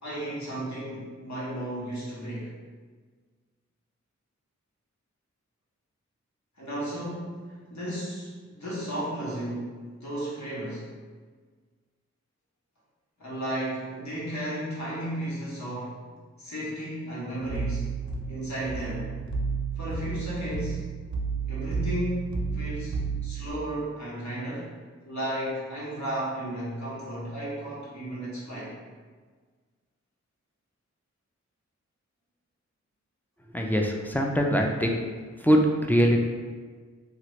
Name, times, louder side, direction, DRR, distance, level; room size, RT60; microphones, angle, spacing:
voice 1, 0.0-2.5 6.6-10.9 13.2-16.0 16.4-17.9 18.3-19.1 19.7-20.9 21.5-24.7 25.1-28.7, right 1 dB, 70° left, -8 dB, 1.2 m, -34 dB
sound 1, 17.4-23.5, right 5 dB, 75° right, 0.5 m, -32 dB
voice 2, 33.5-34.9 35.4-35.6 35.9-36.2, equal, 5° left, 0 dB, 0.4 m, -22 dB
2.9 x 2.4 x 3.1 m, 1.5 s
cardioid pair, 45°, 29 cm